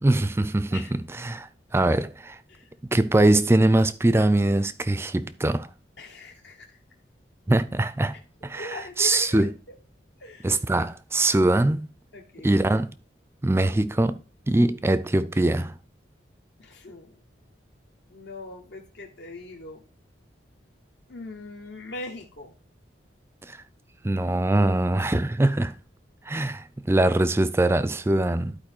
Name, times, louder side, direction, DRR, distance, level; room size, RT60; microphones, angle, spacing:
voice 1, 0.0-2.4 2.9-5.7 7.5-9.5 10.4-11.9 12.4-12.9 13.4-14.2 14.5-15.7 23.4-23.6 24.0-25.7 26.3-28.6, right 2 dB, 15° right, 0.3 m, -22 dB
voice 2, 6.0-6.8 8.5-9.7 10.2-10.5 12.1-12.5 16.6-17.1 18.1-19.8 21.1-22.5 25.0-25.1, left 2 dB, 70° left, 1.1 m, -41 dB
11.5 x 4.5 x 4.4 m
head